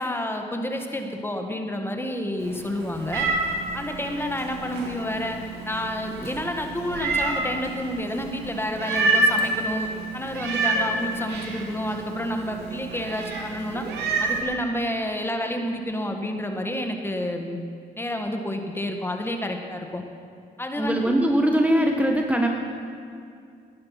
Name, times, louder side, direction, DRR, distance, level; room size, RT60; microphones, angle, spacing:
voice 1, 0.0-3.3 3.7-5.4 5.6-9.9 10.1-13.9 14.2-17.6 17.9-20.0 20.6-21.1, left 1 dB, 15° left, 4 dB, 1.6 m, -29 dB
Meow, 2.4-14.4, right 2 dB, 90° right, 2.5 m, -28 dB
voice 2, 20.8-22.5, right 1 dB, 10° right, 2 dB, 1.3 m, -21 dB
18.5 x 10.5 x 5.8 m, 2.3 s
cardioid pair, 90°, 17 cm